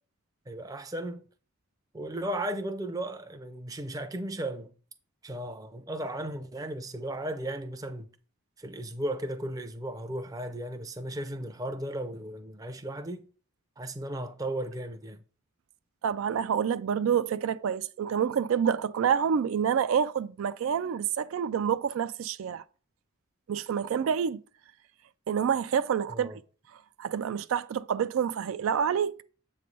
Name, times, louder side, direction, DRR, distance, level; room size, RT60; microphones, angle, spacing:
voice 1, 0.5-1.3 1.9-4.7 5.2-8.1 8.6-13.2 13.8-15.2 26.1-26.4, right 1 dB, 15° right, 0.5 m, -35 dB
voice 2, 16.0-22.6 23.5-24.4 25.3-26.4 27.0-29.2, right 7 dB, 80° right, 0.3 m, -28 dB
7.6 x 3.2 x 5.3 m
head